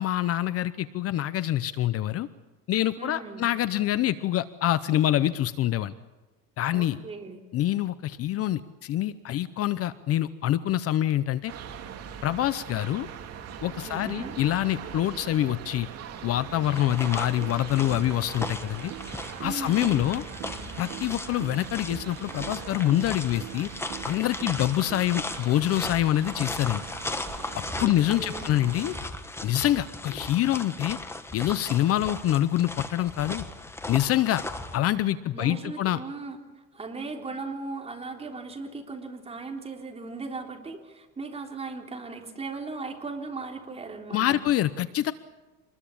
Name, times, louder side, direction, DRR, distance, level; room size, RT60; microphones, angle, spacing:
voice 1, 0.0-2.3 2.7-5.9 6.6-7.0 7.5-11.5 12.2-13.1 13.6-15.9 16.2-18.9 19.4-20.2 20.8-23.7 24.0-26.8 27.5-28.9 29.4-31.0 31.3-33.4 33.9-34.4 34.7-36.0 44.1-45.1, left 13 dB, 45° left, 15 dB, 0.8 m, -26 dB
voice 2, 3.0-3.5 6.7-7.4 13.8-14.4 19.4-20.1 27.8-28.7 35.3-36.4 36.7-44.4, right 3 dB, 20° right, 2 dB, 3.6 m, -38 dB
sound 1, 11.5-29.1, right 8 dB, 45° right, 2.6 m, -42 dB
sound 2, 16.7-34.8, left 2 dB, 5° left, 1.5 m, -37 dB
sound 3, 17.4-25.4, right 16 dB, 90° right, 1.7 m, -44 dB
26.0 x 21.0 x 8.6 m, 1.2 s
cardioid pair, 145°, 34 cm